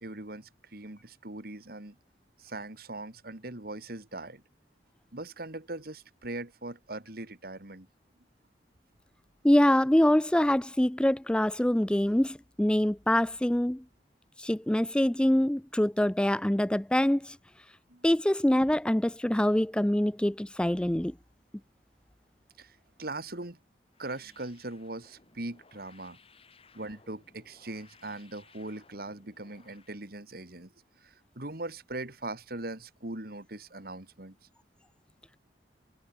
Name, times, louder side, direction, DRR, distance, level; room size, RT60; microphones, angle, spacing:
voice 1, 0.0-2.0 2.4-4.4 5.1-7.9 17.9-18.1 22.6-23.6 24.0-26.2 26.7-30.7 31.0-34.4, right 2 dB, 60° right, 2.5 m, -40 dB
voice 2, 9.4-13.8 14.4-17.4 18.0-21.1, left 1 dB, 5° left, 0.4 m, -25 dB
sound 1, 23.9-30.0, left 4 dB, 35° left, 6.0 m, -61 dB
head